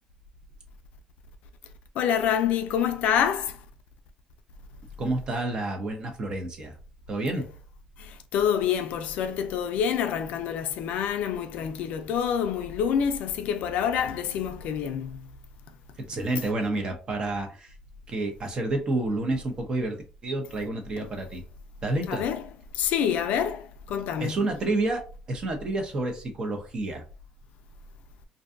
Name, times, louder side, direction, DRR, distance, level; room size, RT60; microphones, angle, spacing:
voice 1, 2.0-3.6 8.0-15.3 21.0-21.1 22.1-22.4 22.7-24.4, left 8 dB, 70° left, 0.4 m, -27 dB
voice 2, 5.0-6.7 7.1-7.4 16.1-17.7 18.1-20.0 20.2-21.4 21.8-22.2 24.2-27.0, right 2 dB, 35° right, 0.7 m, -29 dB
2.6 x 2.2 x 2.5 m
cardioid pair, 130°, 3 cm